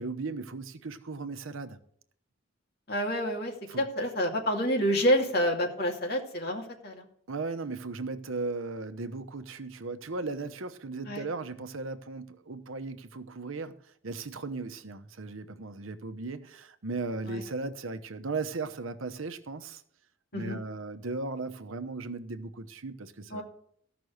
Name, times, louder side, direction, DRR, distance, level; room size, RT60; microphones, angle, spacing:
voice 1, 0.0-1.8 3.7-3.8 7.3-13.8 14.0-19.8 20.3-23.4, right 3 dB, 85° right, 0.9 m, -37 dB
voice 2, 2.9-7.1 11.0-11.2 17.3-17.4 20.3-20.6 23.3-23.4, equal, 50° left, 2.3 m, -28 dB
14.5 x 6.1 x 6.4 m
head